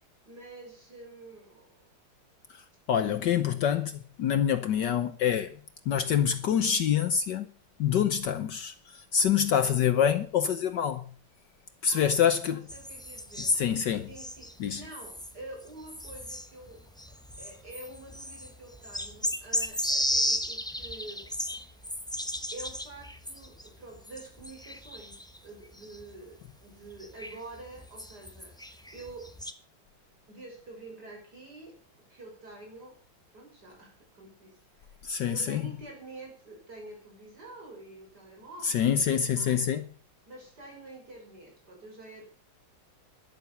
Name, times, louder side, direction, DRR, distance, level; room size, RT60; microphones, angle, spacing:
voice 1, 0.0-1.9 11.9-12.1 12.5-13.5 14.1-16.8 17.1-21.8 22.5-28.6 28.9-29.3 30.3-31.8 32.1-33.0 33.3-39.7 40.3-42.2, right 2 dB, 55° right, 6.4 m, -47 dB
voice 2, 2.9-5.5 5.9-7.5 7.8-11.1 11.8-12.6 13.4-14.1 14.6-14.8 35.0-35.6 38.6-39.8, left 8 dB, 65° left, 1.4 m, -26 dB
sound 1, 12.7-25.4 25.6-26.2 26.9-29.5, equal, 5° left, 0.6 m, -35 dB
12.0 x 11.5 x 6.9 m
omnidirectional pair, 2.1 m